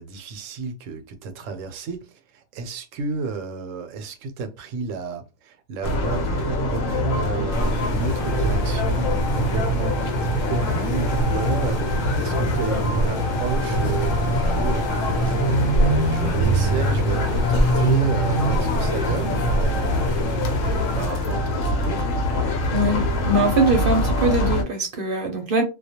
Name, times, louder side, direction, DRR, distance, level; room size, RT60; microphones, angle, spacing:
voice 1, 0.0-15.6 16.0-20.1 21.0-22.1, right 4 dB, 80° right, 0.9 m, -32 dB
sound 1, 5.8-24.6, left 1 dB, 85° left, 1.0 m, -24 dB
sound 2, 7.5-21.1, right 1 dB, 55° left, 0.5 m, -26 dB
voice 2, 22.7-25.6, right 2 dB, 55° right, 0.7 m, -22 dB
2.3 x 2.1 x 2.7 m
omnidirectional pair, 1.3 m